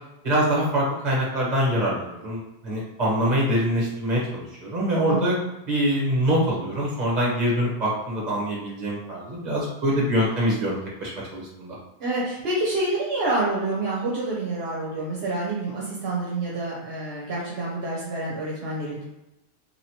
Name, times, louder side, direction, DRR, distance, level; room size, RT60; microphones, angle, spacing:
voice 1, 0.2-5.4 5.7-11.7, equal, 45° right, -5 dB, 1.2 m, -24 dB
voice 2, 5.1-5.4 12.0-19.0, right 2 dB, 70° right, -5 dB, 1.0 m, -27 dB
3.0 x 2.8 x 2.8 m, 0.93 s
omnidirectional pair, 1.1 m